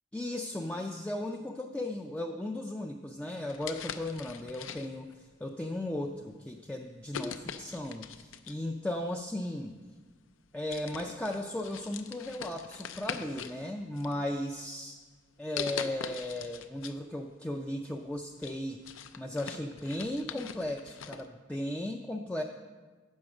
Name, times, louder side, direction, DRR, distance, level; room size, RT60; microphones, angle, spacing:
voice 1, 0.1-9.8 10.5-15.0 15.4-18.8 19.2-22.4, left 1 dB, 5° left, 1 dB, 0.3 m, -36 dB
sound 1, 3.5-5.1 5.9-6.1 7.1-8.7 9.8-9.9 10.3-10.4 10.7-13.6 13.9-14.7 15.6-17.0 17.3-17.4 17.9-21.2, left 7 dB, 80° left, 0.5 m, -42 dB
8.2 x 6.3 x 6.0 m, 1.4 s
head